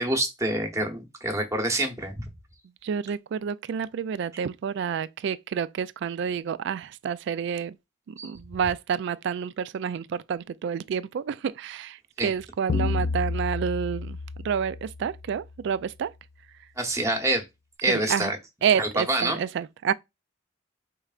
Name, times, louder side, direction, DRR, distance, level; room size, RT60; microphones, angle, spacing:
voice 1, 0.0-2.3 8.2-8.3 12.2-12.3 16.8-17.4 17.8-18.4 18.8-19.4, right 1 dB, 15° right, 0.9 m, -26 dB
voice 2, 2.8-7.8 8.1-14.2 14.4-16.1 17.9-18.3 18.6-19.9, right 7 dB, 65° right, 0.3 m, -29 dB
sound 1, 12.7-15.4, left 3 dB, 45° left, 0.4 m, -30 dB
4.6 x 3.2 x 2.4 m
head